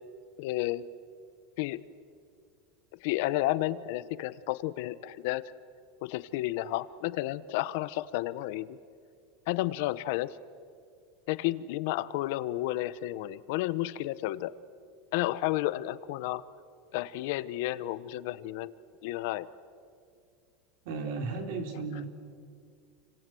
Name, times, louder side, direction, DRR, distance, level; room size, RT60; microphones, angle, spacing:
voice 1, 0.4-0.9 1.6-1.8 3.0-5.4 6.0-8.8 9.5-10.4 11.3-14.5 15.1-16.4 16.9-18.7 19.0-19.5, left 16 dB, 60° left, 16 dB, 0.8 m, -31 dB
voice 2, 20.8-22.1, right 4 dB, 60° right, 5 dB, 3.8 m, -34 dB
29.5 x 25.0 x 7.8 m, 2.2 s
supercardioid pair, 170°, 0 cm